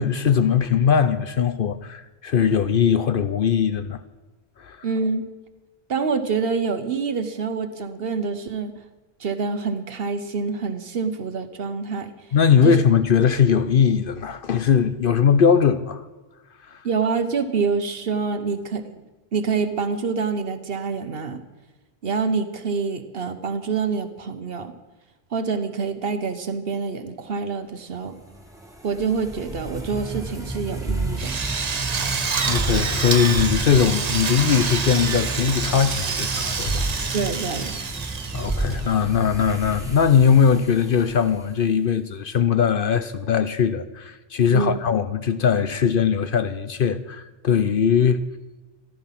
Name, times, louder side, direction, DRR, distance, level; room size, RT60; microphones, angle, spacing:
voice 1, 0.0-4.0 4.6-4.8 12.3-16.0 16.7-16.8 32.5-36.9 38.3-48.2, left 7 dB, 60° left, 0.8 m, -20 dB
voice 2, 4.8-5.3 5.9-8.8 9.2-12.3 12.6-12.8 16.8-19.0 19.3-21.4 22.0-24.7 25.3-28.2 28.8-31.4 37.1-37.7 44.5-44.8, right 5 dB, 65° right, 1.1 m, -26 dB
sound 1, 28.1-41.5, right 2 dB, 5° right, 2.0 m, -31 dB
Drill, 31.2-39.0, right 5 dB, 40° right, 0.8 m, -27 dB
15.5 x 12.0 x 5.8 m
omnidirectional pair, 1.1 m